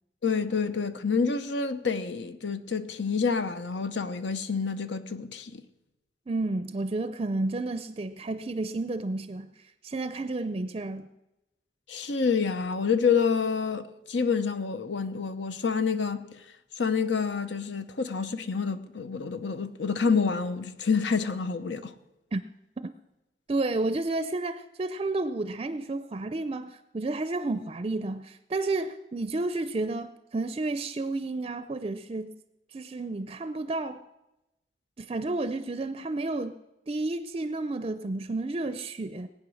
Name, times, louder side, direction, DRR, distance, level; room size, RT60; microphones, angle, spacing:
voice 1, 0.2-5.6 11.9-16.3 16.8-21.9, left 5 dB, 85° left, 0.9 m, -28 dB
voice 2, 6.3-9.5 9.8-11.1 22.3-22.4 22.8-22.9 23.5-32.3 32.7-34.0 35.0-36.6 36.9-39.3, right 2 dB, 30° right, 0.5 m, -31 dB
19.0 x 9.0 x 6.3 m
head